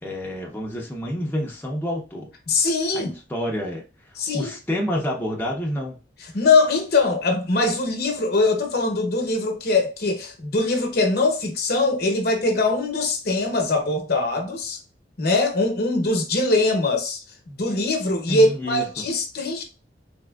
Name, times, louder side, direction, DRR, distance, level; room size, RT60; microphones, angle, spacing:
voice 1, 0.0-2.3 2.9-6.0 18.3-19.0, equal, 10° left, 0.5 m, -29 dB
voice 2, 2.5-3.1 4.2-4.5 6.3-14.8 15.2-17.2 17.5-19.6, left 3 dB, 60° left, 0.8 m, -22 dB
3.5 x 2.8 x 2.3 m
head